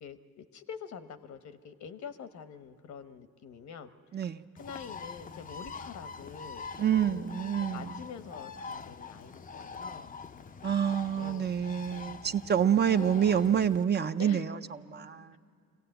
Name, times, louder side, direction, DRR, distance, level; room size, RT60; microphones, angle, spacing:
voice 1, 0.0-4.2 4.6-7.3 7.6-10.1 11.1-11.5 12.9-13.1 14.2-14.5, left 6 dB, 65° left, 1.1 m, -46 dB
voice 2, 4.1-4.4 6.8-7.9 10.6-14.6 14.9-15.4, right 8 dB, 35° right, 0.5 m, -27 dB
Bird, 4.6-13.8, left 5 dB, 30° left, 0.5 m, -44 dB
24.5 x 17.0 x 7.9 m
cardioid pair, 90°, 30 cm